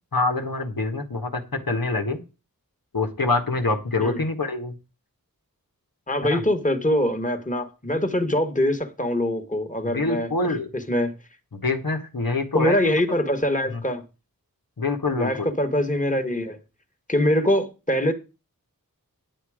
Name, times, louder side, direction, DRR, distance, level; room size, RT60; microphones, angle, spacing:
voice 1, 0.1-2.2 2.9-4.7 6.2-6.4 9.8-10.7 11.5-12.9 13.7-13.8 14.8-15.5, left 3 dB, 70° left, 1.7 m, -25 dB
voice 2, 6.1-10.3 10.7-11.1 12.5-14.0 15.2-16.6 17.1-18.1, left 1 dB, 20° left, 1.7 m, -23 dB
10.0 x 8.1 x 5.0 m
wide cardioid pair, 40°, 36 cm